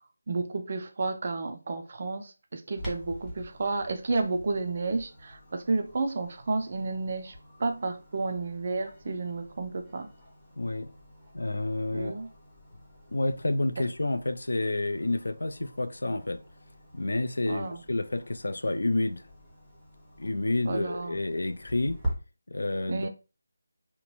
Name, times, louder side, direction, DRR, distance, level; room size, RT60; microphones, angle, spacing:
voice 1, 0.3-10.1 11.9-12.3 17.5-17.8 20.7-21.2 22.9-23.1, right 3 dB, 35° right, 0.3 m, -31 dB
Clock, 2.8-22.1, equal, 5° left, 0.6 m, -45 dB
voice 2, 10.6-10.9 11.3-12.2 13.1-16.4 16.9-19.3 20.2-22.0 22.5-23.1, left 2 dB, 75° left, 0.4 m, -29 dB
2.9 x 2.1 x 3.0 m
figure-of-eight pair, 175°, 0 cm